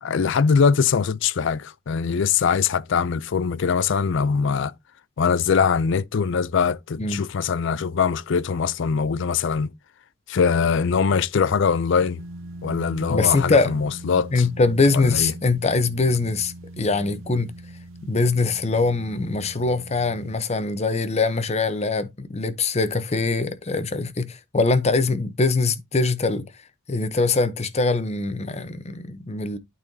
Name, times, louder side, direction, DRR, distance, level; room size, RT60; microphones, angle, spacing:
voice 1, 0.0-4.7 5.2-9.7 10.3-12.2 12.6-14.5 14.9-15.3, left 6 dB, 65° left, 0.4 m, -22 dB
sound 1, 12.2-20.4, right 1 dB, 75° right, 0.6 m, -41 dB
voice 2, 13.1-13.7 14.3-17.5 18.0-26.5 26.9-29.6, left 3 dB, 35° left, 0.8 m, -22 dB
12.0 x 4.1 x 2.7 m
head